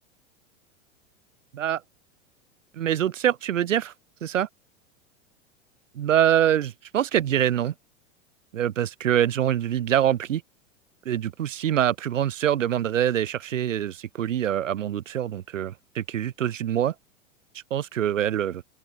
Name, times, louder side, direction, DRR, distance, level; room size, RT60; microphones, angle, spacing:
voice 1, 2.7-3.9 4.2-4.5 6.0-7.7 8.5-10.4 11.1-17.0 17.5-18.6, right 10 dB, 80° right, 1.9 m, -24 dB
open air
hypercardioid pair, 100°, 38 cm